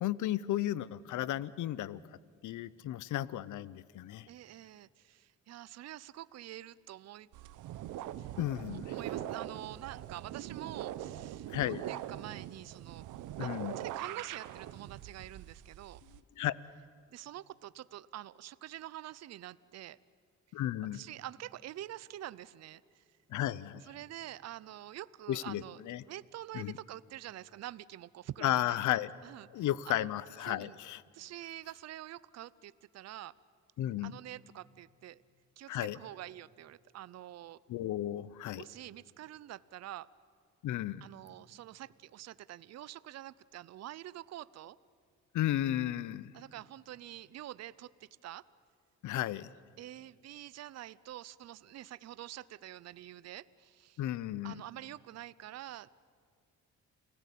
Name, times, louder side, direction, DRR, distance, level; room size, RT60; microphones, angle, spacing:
voice 1, 0.0-2.0 2.4-4.3 8.4-8.9 11.5-11.8 13.4-13.8 16.4-16.5 20.5-21.0 23.3-23.8 25.3-26.0 26.5-26.7 28.4-29.1 29.5-31.0 33.8-34.1 35.7-36.0 37.7-38.6 40.6-41.1 45.3-46.3 49.0-49.5 54.0-54.6, left 13 dB, 75° left, 19 dB, 0.7 m, -34 dB
voice 2, 4.3-7.3 8.2-8.3 8.7-13.1 13.4-16.0 17.1-20.0 20.9-23.0 23.8-25.8 26.1-30.1 30.4-30.8 31.1-33.3 34.0-35.2 35.6-37.6 38.5-40.1 41.0-44.8 46.3-48.4 49.8-54.0 54.4-55.9, right 13 dB, 60° right, 19 dB, 0.6 m, -47 dB
sound 1, 7.3-16.2, right 12 dB, 85° right, 0.8 m, -42 dB
29.5 x 17.0 x 8.4 m, 2.2 s
cardioid pair, 90°, 30 cm